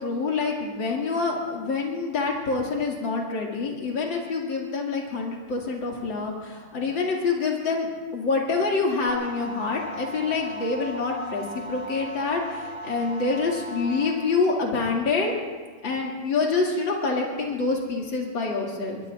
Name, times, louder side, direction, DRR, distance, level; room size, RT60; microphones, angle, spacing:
voice 1, 0.0-7.9 8.1-15.4 15.8-19.0, left 4 dB, 60° left, -1 dB, 3.1 m, -26 dB
sound 1, 9.1-14.1, right 1 dB, 65° right, 2.7 m, -37 dB
22.5 x 22.0 x 2.5 m, 1.4 s
omnidirectional pair, 2.4 m